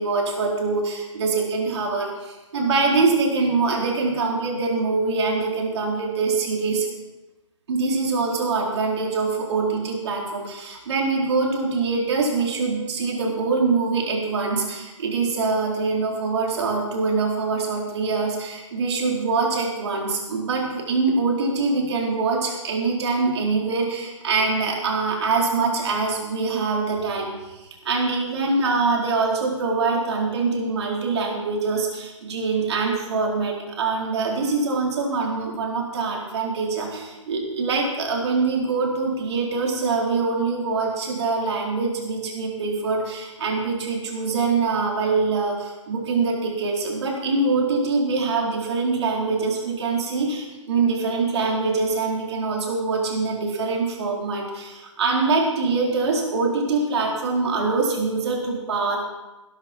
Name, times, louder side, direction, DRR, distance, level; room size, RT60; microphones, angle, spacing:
voice 1, 0.0-6.9 7.7-59.0, right 4 dB, 60° right, -1 dB, 4.3 m, -24 dB
18.0 x 11.5 x 4.6 m, 1.1 s
figure-of-eight pair, 130°, 16 cm